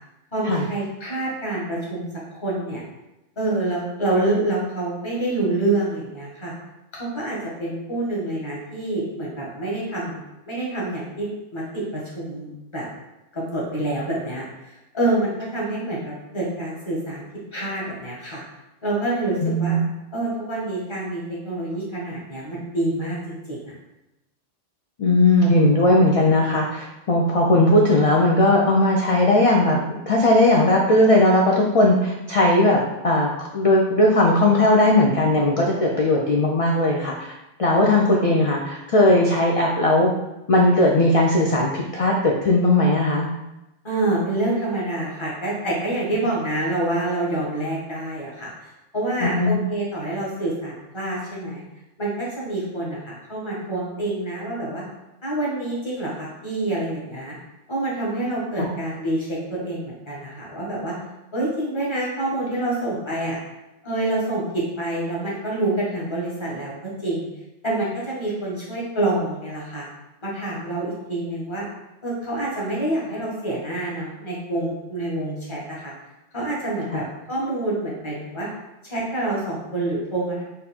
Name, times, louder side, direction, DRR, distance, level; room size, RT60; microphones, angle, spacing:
voice 1, 0.3-2.1 2.4-2.8 3.4-6.5 6.9-12.9 13.3-17.2 17.5-18.4 18.8-19.8 20.1-23.7 43.8-51.6 52.0-54.8 55.2-57.4 57.7-61.0 61.3-63.4 63.8-67.3 67.6-69.9 70.2-71.7 72.0-75.9 76.3-78.5 78.8-80.4, right 2 dB, 25° left, -5 dB, 1.2 m, -27 dB
voice 2, 19.4-19.8 25.0-37.3 37.6-40.1 40.5-43.3 49.2-49.6 58.6-58.7 76.9-77.0, left 1 dB, 70° left, -2 dB, 0.3 m, -18 dB
4.0 x 2.5 x 4.2 m, 0.96 s
omnidirectional pair, 1.3 m